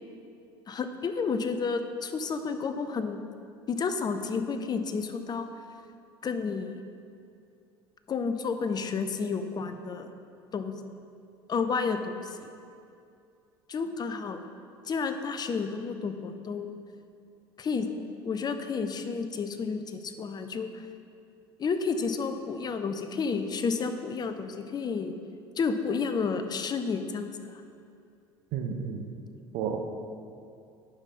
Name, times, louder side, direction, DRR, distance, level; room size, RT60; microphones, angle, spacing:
voice 1, 0.7-3.2 3.7-5.5 6.2-6.7 8.1-10.1 10.5-10.8 11.5-12.5 13.7-14.4 14.9-16.8 17.6-17.9 18.2-20.7 21.6-25.1 25.6-27.3, left 5 dB, 30° left, 8 dB, 0.7 m, -31 dB
voice 2, 28.5-29.0 29.5-29.8, right 7 dB, 55° right, 4 dB, 0.7 m, -31 dB
9.7 x 5.3 x 4.2 m, 2.5 s
hypercardioid pair, 70°, 13 cm